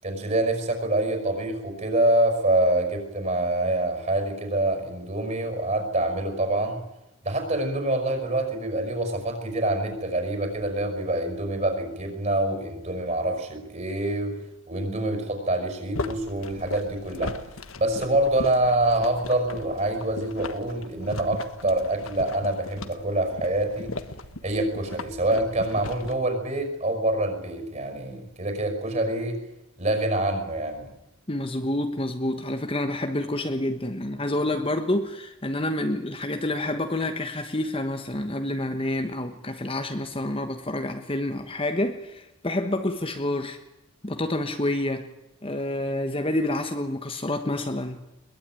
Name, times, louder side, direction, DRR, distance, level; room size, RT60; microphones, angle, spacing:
voice 1, 0.0-6.8 7.2-14.3 14.7-17.3 17.8-23.9 24.4-29.4 29.8-30.9, right 1 dB, 35° right, 6 dB, 5.7 m, -26 dB
sound 1, 15.9-26.1, left 2 dB, 65° left, 1.4 m, -38 dB
voice 2, 31.3-43.6 44.0-45.1 45.4-48.0, left 1 dB, 25° left, 6 dB, 1.2 m, -28 dB
22.0 x 20.0 x 9.2 m, 0.94 s
head